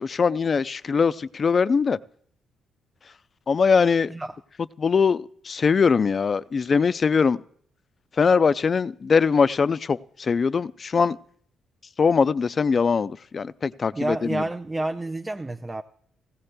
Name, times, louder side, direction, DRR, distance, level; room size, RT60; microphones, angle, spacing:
voice 1, 0.0-2.0 3.5-4.1 4.8-7.4 8.2-11.2 12.0-14.4, left 5 dB, 40° left, 0.4 m, -21 dB
voice 2, 13.9-15.8, right 2 dB, 20° right, 0.5 m, -29 dB
16.5 x 16.0 x 2.2 m
cardioid pair, 90°, 0 cm